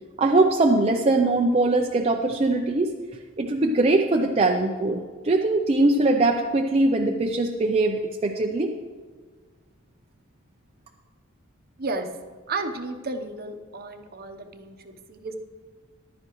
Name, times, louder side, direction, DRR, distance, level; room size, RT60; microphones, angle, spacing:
voice 1, 0.2-2.9 3.4-8.7, right 2 dB, 30° right, 1 dB, 0.5 m, -21 dB
voice 2, 11.8-12.1 12.5-15.3, right 3 dB, 50° right, 6 dB, 0.9 m, -33 dB
14.5 x 11.5 x 3.1 m, 1.5 s
head